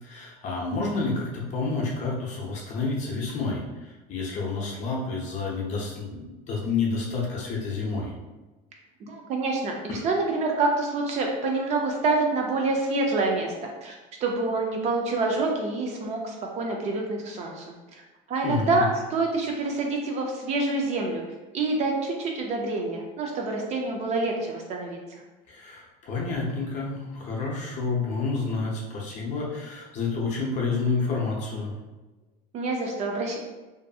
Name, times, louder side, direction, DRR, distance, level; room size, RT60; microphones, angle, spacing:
voice 1, 0.0-8.1 9.9-10.1 18.4-18.8 25.5-31.7, left 4 dB, 40° left, -2 dB, 0.6 m, -29 dB
voice 2, 9.1-13.9 14.2-18.0 18.3-18.8 19.1-21.2 21.5-25.2 32.5-33.4, right 3 dB, 35° right, 1 dB, 0.4 m, -27 dB
2.6 x 2.5 x 2.3 m, 1.1 s
cardioid pair, 155°, 19 cm